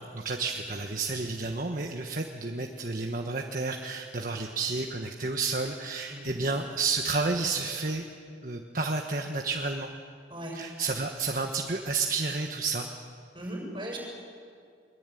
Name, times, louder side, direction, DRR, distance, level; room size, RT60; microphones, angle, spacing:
voice 1, 0.1-8.0 8.4-9.9 10.5-12.9, right 3 dB, 50° right, 3 dB, 1.4 m, -31 dB
voice 2, 6.1-6.4 10.3-10.6 13.3-14.0, right 1 dB, 25° right, -1 dB, 7.4 m, -37 dB
23.5 x 23.0 x 9.3 m, 2.3 s
head